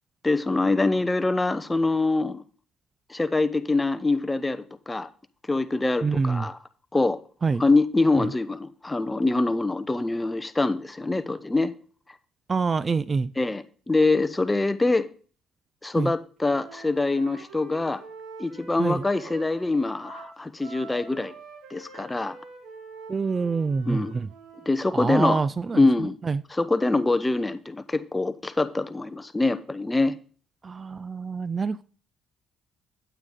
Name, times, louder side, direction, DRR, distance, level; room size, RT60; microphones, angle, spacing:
voice 1, 0.2-2.4 3.1-5.1 5.5-6.6 6.9-7.2 7.6-11.7 13.4-15.1 15.8-18.0 18.4-21.3 21.7-22.4 23.9-24.1 24.7-25.4 25.7-26.1 26.5-30.2, left 2 dB, 15° left, 13 dB, 0.8 m, -24 dB
voice 2, 6.0-6.5 7.4-7.6 8.2-8.3 12.5-13.3 16.0-16.1 18.8-19.0 23.1-24.3 24.9-26.4 30.6-31.8, right 4 dB, 35° right, 19 dB, 0.3 m, -26 dB
Wind instrument woodwind instrument, 16.4-24.8, right 4 dB, 75° right, 3.2 m, -46 dB
9.0 x 8.8 x 3.7 m, 0.41 s
supercardioid pair, 70°, 0 cm